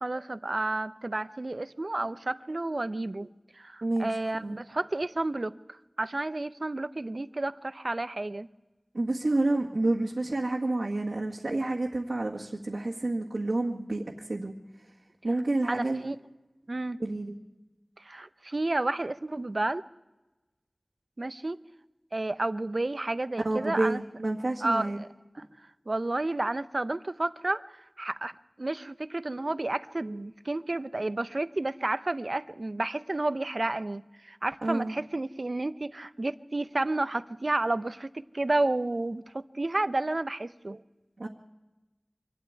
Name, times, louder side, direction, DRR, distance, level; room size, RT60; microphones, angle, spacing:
voice 1, 0.0-8.5 15.7-16.2 16.7-17.0 18.0-19.8 21.2-21.6 22.1-24.0 24.6-25.1 25.4-25.5 25.9-40.8, right 2 dB, 60° right, 14 dB, 0.7 m, -31 dB
voice 2, 3.8-4.6 8.9-14.5 15.2-16.0 17.0-17.3 23.4-25.0 34.6-34.9 41.2-41.3, right 2 dB, 75° right, -3 dB, 1.7 m, -29 dB
24.5 x 12.5 x 9.6 m, 1.1 s
wide cardioid pair, 45°, 0 cm